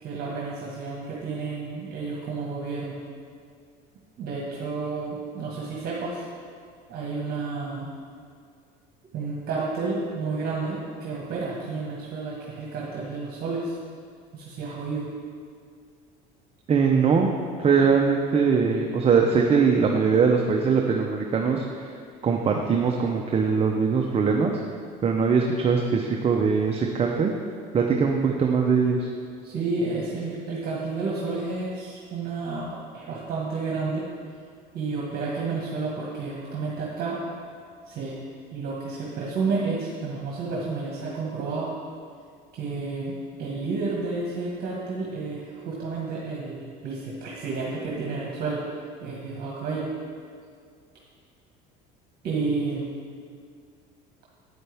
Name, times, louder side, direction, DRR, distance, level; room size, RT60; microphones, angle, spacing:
voice 1, 0.0-3.0 4.2-6.2 6.9-7.9 9.1-13.8 14.3-15.1 29.4-34.0 34.7-37.2 37.9-38.2 38.5-41.7 42.5-43.1 43.4-48.6 49.0-49.9 52.2-53.0, right 4 dB, 50° right, -4 dB, 1.6 m, -31 dB
voice 2, 16.7-17.3 17.6-22.0 22.2-24.5 25.0-27.3 27.7-29.1, right 5 dB, 30° right, 1 dB, 0.7 m, -21 dB
9.0 x 8.8 x 3.5 m, 2.2 s
supercardioid pair, 110°, 20 cm